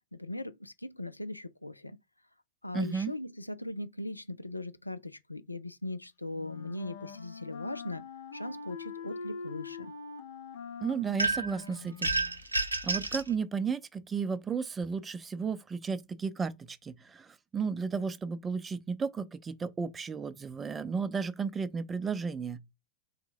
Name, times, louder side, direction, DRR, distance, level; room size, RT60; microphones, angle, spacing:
voice 1, 0.1-2.0 2.6-9.9, left 2 dB, 85° left, 0.3 m, -39 dB
voice 2, 2.7-3.1 10.8-12.1 12.8-22.6, right 5 dB, 15° right, 0.4 m, -33 dB
Wind instrument woodwind instrument, 6.3-12.4, left 5 dB, 65° left, 0.8 m, -44 dB
sound 1, 11.2-11.6 12.0-13.3, right 2 dB, 80° right, 0.5 m, -30 dB
3.6 x 3.0 x 3.4 m
figure-of-eight pair, 90°, 0 cm